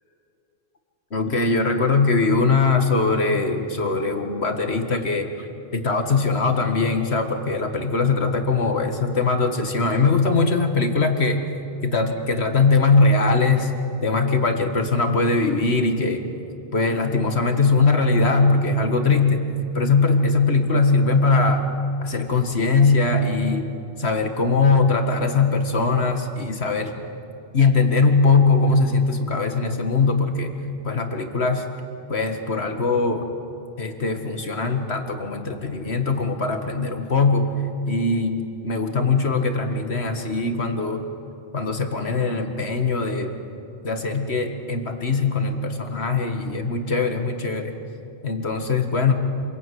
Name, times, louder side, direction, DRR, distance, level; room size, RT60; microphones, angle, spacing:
voice 1, 1.1-5.5 5.7-11.4 11.8-13.7 14.0-16.3 16.7-19.4 19.7-21.6 22.0-23.7 24.0-27.0 27.5-30.5 30.8-31.6 32.1-33.3 33.8-37.5 37.9-41.0 41.5-43.4 43.8-47.8 48.2-49.1, left 3 dB, 80° left, 5 dB, 2.1 m, -21 dB
27.5 x 21.5 x 9.3 m, 2.8 s
omnidirectional pair, 1.1 m